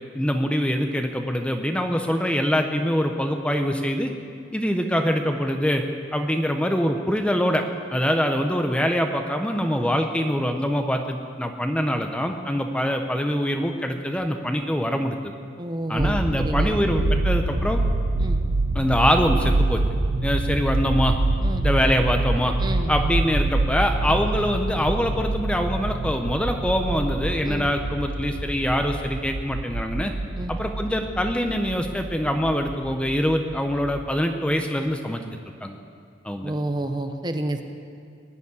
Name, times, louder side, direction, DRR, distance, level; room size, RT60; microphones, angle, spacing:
voice 1, 0.1-4.1 4.5-5.8 6.1-7.6 7.9-15.3 15.9-17.8 18.7-19.8 20.2-21.2 21.6-22.5 22.9-30.1 30.5-35.8 36.2-36.5, equal, 5° left, 5 dB, 0.7 m, -24 dB
voice 2, 15.6-16.8 18.2-18.4 21.4-21.6 22.6-22.9 24.1-24.2 27.4-27.7 30.4-30.5 36.4-37.6, right 1 dB, 20° right, 6 dB, 0.9 m, -30 dB
sound 1, 16.0-34.0, right 2 dB, 70° right, 0.9 m, -26 dB
20.0 x 7.1 x 9.7 m, 2.2 s
head